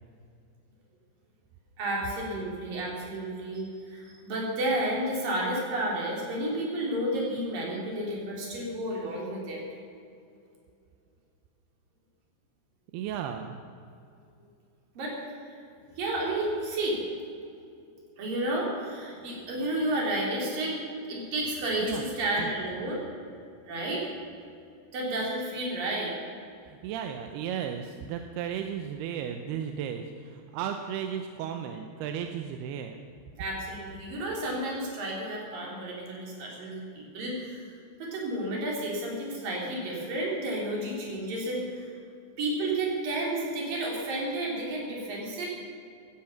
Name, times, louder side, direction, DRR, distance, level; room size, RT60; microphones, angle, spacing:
voice 1, 1.8-9.7 15.0-15.6 16.0-17.0 18.2-20.8 21.1-23.0 23.7-24.1 24.9-26.2 33.4-37.7 38.0-41.9 42.4-45.5, right 1 dB, 55° right, -2 dB, 5.0 m, -31 dB
voice 2, 12.9-13.5 21.8-22.0 22.4-22.5 26.7-33.0, right 8 dB, 80° right, 5 dB, 2.6 m, -34 dB
17.0 x 13.5 x 5.9 m, 2.5 s
omnidirectional pair, 5.0 m